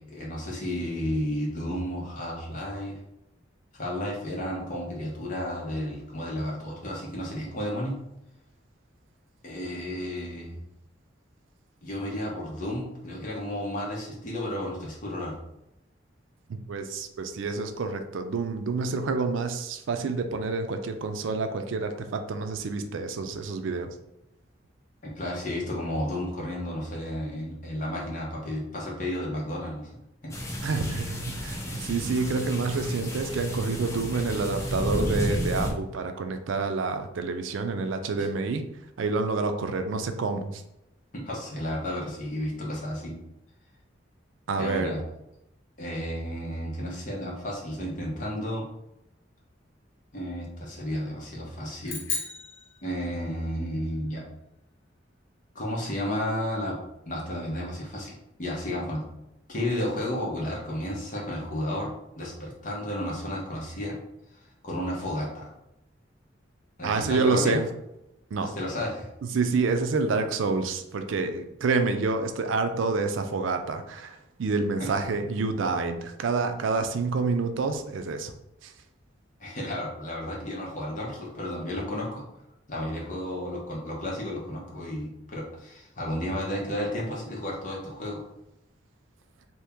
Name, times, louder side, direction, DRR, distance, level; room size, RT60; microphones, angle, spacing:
voice 1, 0.0-3.0 3.7-7.9 9.4-10.6 11.8-15.3 25.0-29.9 30.2-30.3 31.5-31.6 38.2-38.3 41.1-43.2 44.5-45.0 45.8-48.6 50.1-52.0 52.8-54.2 55.5-56.8 57.1-58.1 58.4-59.0 59.5-61.9 62.2-64.0 64.6-65.5 66.8-67.6 68.4-69.1 74.8-74.9 79.4-82.2 82.7-88.2, left 1 dB, 40° left, -3 dB, 0.9 m, -32 dB
voice 2, 16.5-23.9 30.6-38.6 39.0-40.6 44.5-44.9 66.8-67.7 68.3-68.5 69.3-78.3 78.6-78.7, right 4 dB, 85° right, 8 dB, 0.4 m, -28 dB
sound 1, 30.3-35.7, equal, 15° left, 0.5 m, -32 dB
sound 2, 51.8-53.5, left 4 dB, 80° left, 0.8 m, -35 dB
2.8 x 2.7 x 3.5 m, 0.86 s
head